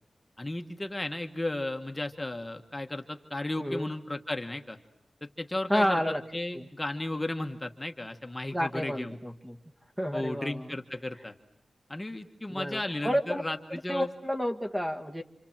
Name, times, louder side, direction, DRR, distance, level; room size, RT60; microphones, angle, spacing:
voice 1, 0.4-4.8 5.4-6.0 6.3-9.1 10.1-11.3 11.9-14.1, left 1 dB, 15° left, 5 dB, 1.4 m, -34 dB
voice 2, 3.6-3.9 5.7-6.2 6.5-6.7 8.5-9.6 10.0-10.7 12.5-13.4 13.9-15.2, equal, 10° right, 5 dB, 1.6 m, -30 dB
28.0 x 27.0 x 7.4 m, 0.72 s
wide cardioid pair, 150°, 0 cm